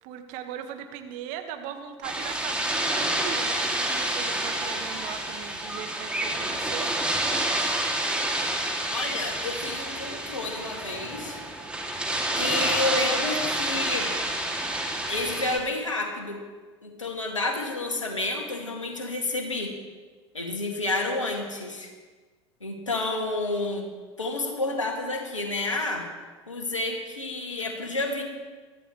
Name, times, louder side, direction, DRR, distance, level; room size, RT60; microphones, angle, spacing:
voice 1, 0.0-6.9, right 9 dB, 55° right, 6 dB, 1.8 m, -39 dB
sound 1, 2.0-15.6, right 1 dB, 5° right, 2.7 m, -28 dB
voice 2, 8.9-11.4 12.4-14.1 15.1-16.4 16.8-19.7 20.3-21.9 22.6-23.9 24.2-26.1 26.5-28.2, left 2 dB, 90° left, 2 dB, 2.4 m, -30 dB
23.0 x 14.0 x 3.3 m, 1.4 s
figure-of-eight pair, 75°, 16 cm